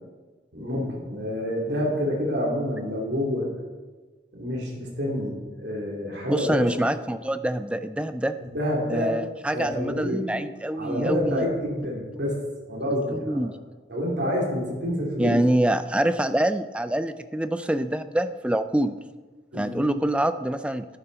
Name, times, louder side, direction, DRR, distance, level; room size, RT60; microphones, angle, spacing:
voice 1, 0.5-3.5 4.3-6.7 8.5-9.1 9.5-10.3 10.8-12.4 12.7-13.5 13.9-15.4 19.5-20.0, left 1 dB, 75° right, -3 dB, 2.8 m, -28 dB
voice 2, 6.3-8.3 8.9-11.4 13.1-13.6 15.2-19.0 19.5-20.9, right 1 dB, 5° right, 11 dB, 0.4 m, -25 dB
11.0 x 9.3 x 4.0 m, 1.3 s
head